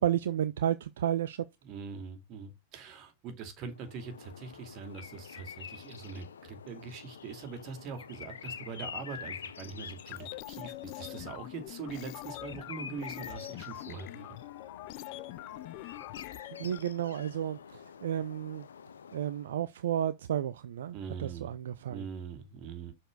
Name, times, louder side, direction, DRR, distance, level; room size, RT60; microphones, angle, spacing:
voice 1, 0.0-1.5 16.6-18.7 19.1-22.0, right 10 dB, 70° right, 0.5 m, -32 dB
voice 2, 1.6-14.3 20.9-21.5 21.9-22.9, right 5 dB, 45° right, 2.4 m, -43 dB
sound 1, 3.7-19.6, left 7 dB, 80° left, 0.7 m, -47 dB
sound 2, 10.0-16.8, left 19 dB, 50° left, 0.4 m, -44 dB
6.7 x 4.3 x 4.7 m
hypercardioid pair, 100°, 0 cm